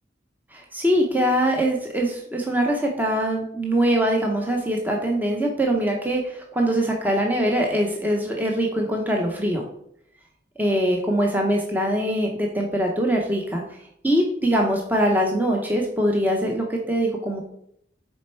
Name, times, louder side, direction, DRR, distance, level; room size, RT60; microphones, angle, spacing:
voice 1, 0.5-9.6 10.6-13.8 14.0-17.4, right 1 dB, 10° right, 0 dB, 0.7 m, -23 dB
6.4 x 4.3 x 4.4 m, 0.72 s
head